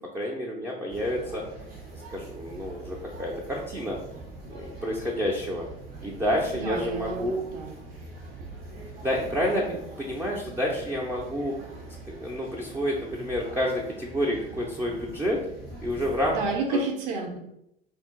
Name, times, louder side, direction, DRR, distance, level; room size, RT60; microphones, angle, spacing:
voice 1, 0.1-1.4 2.1-4.0 4.5-5.7 6.0-7.4 9.0-9.6 10.0-11.5 12.1-15.4 15.8-16.4 16.7-16.8, equal, 10° right, -3 dB, 0.4 m, -29 dB
sound 1, 0.9-16.6, right 2 dB, 75° right, 1.4 m, -43 dB
voice 2, 6.6-7.7 9.5-9.8 16.3-17.4, right 3 dB, 55° right, 2 dB, 0.7 m, -30 dB
2.7 x 2.4 x 3.6 m, 0.80 s
figure-of-eight pair, 70°, 30 cm